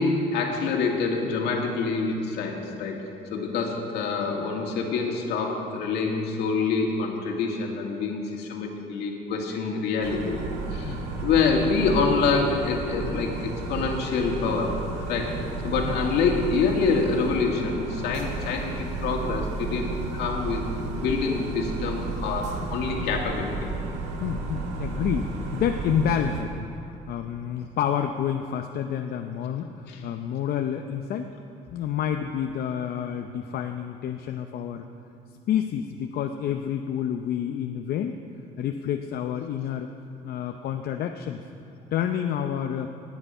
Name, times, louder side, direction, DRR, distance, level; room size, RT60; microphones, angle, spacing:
voice 1, 0.0-10.4 10.7-14.8 15.1-15.4 15.6-18.7 19.0-23.5 29.9-30.0, left 4 dB, 80° left, 1 dB, 2.2 m, -26 dB
sound 1, 10.0-26.4, right 3 dB, 85° right, 1.9 m, -32 dB
voice 2, 10.9-11.3 15.8-16.0 22.6-22.7 24.2-26.7 27.1-31.3 31.7-34.9 35.5-38.2 38.6-39.9 40.2-41.4 41.9-42.9, left 9 dB, 65° left, 5 dB, 0.7 m, -29 dB
16.5 x 9.6 x 5.6 m, 2.6 s
cardioid pair, 110°, 17 cm